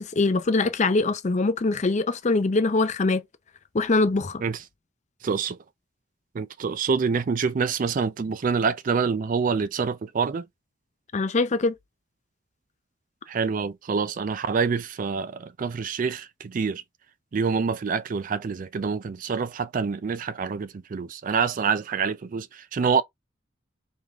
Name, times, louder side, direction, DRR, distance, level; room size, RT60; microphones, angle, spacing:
voice 1, 0.0-3.2 3.7-4.4 11.1-11.7, left 3 dB, 40° left, 0.5 m, -23 dB
voice 2, 5.2-5.6 6.3-10.5 13.3-16.8 17.3-23.0, right 5 dB, 45° right, 0.4 m, -26 dB
4.8 x 3.5 x 2.3 m
head